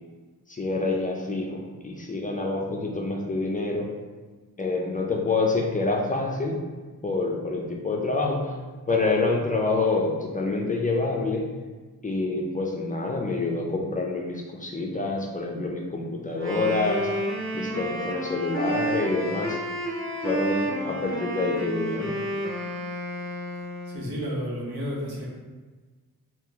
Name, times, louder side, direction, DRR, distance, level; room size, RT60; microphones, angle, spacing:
voice 1, 0.5-3.9 4.6-6.6 7.0-8.5 8.9-11.5 12.0-17.1 17.5-19.6 20.2-22.2, left 3 dB, 25° left, 0 dB, 0.4 m, -27 dB
Wind instrument woodwind instrument, 16.3-24.0, right 1 dB, 35° right, 0.7 m, -30 dB
voice 2, 23.8-25.2, equal, 85° right, -4 dB, 1.0 m, -31 dB
2.8 x 2.4 x 3.7 m, 1.4 s
wide cardioid pair, 100°, 37 cm